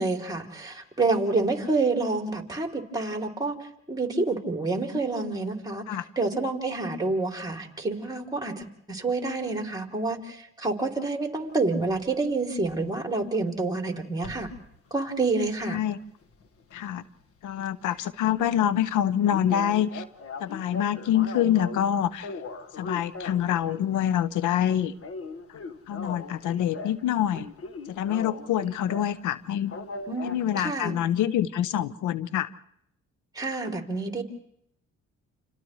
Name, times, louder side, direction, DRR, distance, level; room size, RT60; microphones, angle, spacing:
voice 1, 0.0-14.5 14.9-15.8 30.1-30.9 33.3-34.2, right 3 dB, 15° right, 2 dB, 3.0 m, -28 dB
sound 1, 11.9-12.1 14.2-14.6 15.1-17.2 17.5-17.7 18.0-18.1 18.4-18.5 18.7-18.8 19.3-21.9 22.2-24.0 24.3-24.6 24.9-27.0 27.3-29.2 29.7-30.6, left 3 dB, 50° left, 1.5 m, -39 dB
voice 2, 15.7-16.0 16.7-17.0 17.4-20.0 20.4-22.3 22.8-24.9 25.9-27.5 27.9-29.7 30.2-32.5, left 10 dB, 80° left, 15 dB, 0.8 m, -26 dB
29.5 x 28.0 x 3.2 m, 0.73 s
cardioid pair, 90°, 30 cm